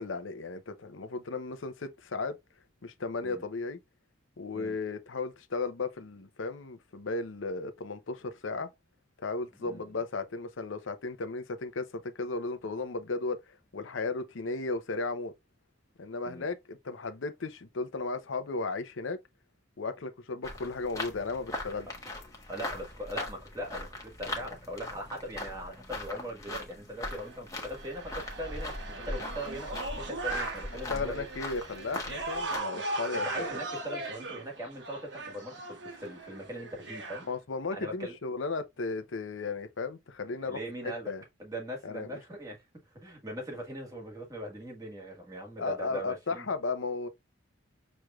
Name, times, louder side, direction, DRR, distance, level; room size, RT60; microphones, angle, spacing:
voice 1, 0.0-2.4 2.8-3.8 4.4-8.7 9.2-13.4 13.7-15.3 16.0-19.2 19.8-21.9 30.7-33.5 37.3-41.2 41.8-42.1 45.6-47.1, left 3 dB, 80° left, 0.7 m, -35 dB
sound 1, 20.4-32.6, left 1 dB, 15° left, 1.1 m, -40 dB
voice 2, 22.5-28.7 29.1-31.2 33.1-37.3 37.7-38.2 40.4-41.1 41.4-42.6 43.0-46.5, equal, 20° right, 1.5 m, -40 dB
sound 2, 27.1-37.3, right 2 dB, 65° right, 1.1 m, -38 dB
6.1 x 3.2 x 2.3 m
head